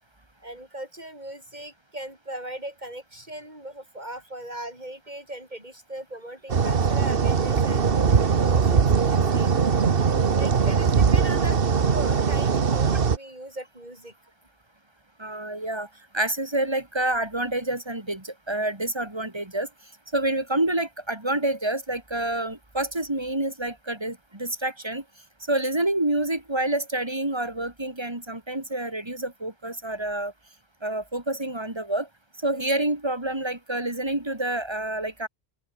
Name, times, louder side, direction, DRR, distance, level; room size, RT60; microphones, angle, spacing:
voice 1, 0.4-7.8 8.3-9.5 10.3-14.1, right 1 dB, 45° right, 8.2 m, -38 dB
sound 1, 6.5-13.2, right 6 dB, 60° right, 1.4 m, -21 dB
voice 2, 15.2-15.9 16.1-19.7 20.1-25.0 25.5-30.3 30.8-32.1 32.4-35.3, right 1 dB, 25° right, 3.2 m, -28 dB
open air
omnidirectional pair, 1.1 m